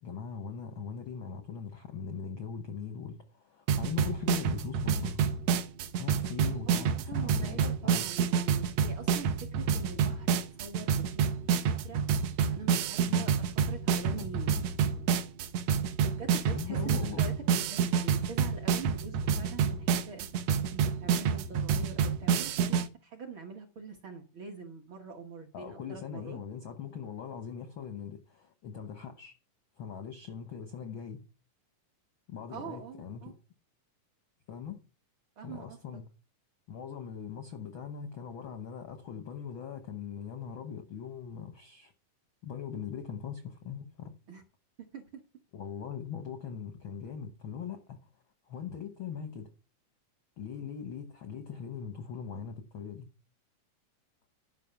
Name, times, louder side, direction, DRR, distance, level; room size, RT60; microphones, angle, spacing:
voice 1, 0.0-5.2 6.0-8.0 13.1-13.3 13.8-14.3 16.5-17.3 25.5-29.3 29.8-31.2 32.3-33.3 34.5-34.8 35.4-36.0 36.7-41.9 42.4-44.1 45.5-48.1 48.5-49.5 50.4-53.1, left 7 dB, 75° left, 1.1 m, -41 dB
sound 1, 3.7-22.9, right 7 dB, 70° right, 1.8 m, -28 dB
voice 2, 6.7-11.6 11.8-12.0 12.5-15.1 16.0-20.3 20.7-26.4 32.5-33.3 35.4-35.8 44.3-44.4 44.8-45.2, right 5 dB, 55° right, 1.5 m, -44 dB
11.0 x 5.6 x 6.8 m
omnidirectional pair, 3.7 m